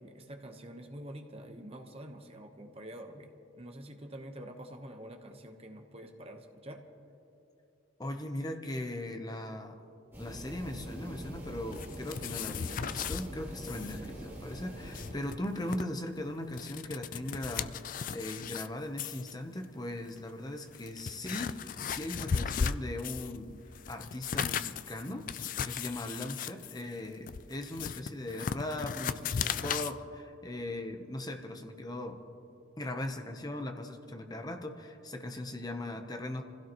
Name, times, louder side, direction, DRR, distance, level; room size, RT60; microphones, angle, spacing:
voice 1, 0.0-6.8, right 1 dB, 30° right, 4 dB, 1.1 m, -47 dB
voice 2, 8.0-9.8 10.2-23.6 23.9-32.2 32.8-36.4, left 1 dB, 20° left, 5 dB, 0.9 m, -39 dB
sound 1, 10.1-15.1, right 1 dB, 10° right, 3.1 m, -44 dB
sound 2, 11.7-13.3 13.6-14.0 14.2-14.3 14.7-15.8 16.4-18.7 19.0-19.3 20.1-20.2 20.7-23.4 23.7-29.9, left 7 dB, 45° left, 0.3 m, -36 dB
25.5 x 16.0 x 3.1 m, 2.8 s
head